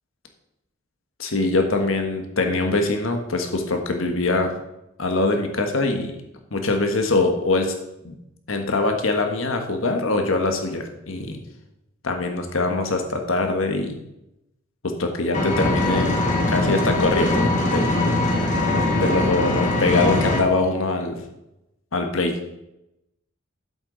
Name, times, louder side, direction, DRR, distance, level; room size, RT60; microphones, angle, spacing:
voice 1, 1.2-4.6 5.0-6.1 6.5-7.7 8.0-8.1 8.5-11.4 12.0-14.0 14.8-16.2 16.5-18.0 18.9-21.2 21.9-22.4, left 2 dB, 85° left, 4 dB, 1.4 m, -23 dB
Engine, 15.3-20.4, left 2 dB, 40° left, 1.8 m, -21 dB
11.5 x 8.1 x 4.0 m, 0.88 s
head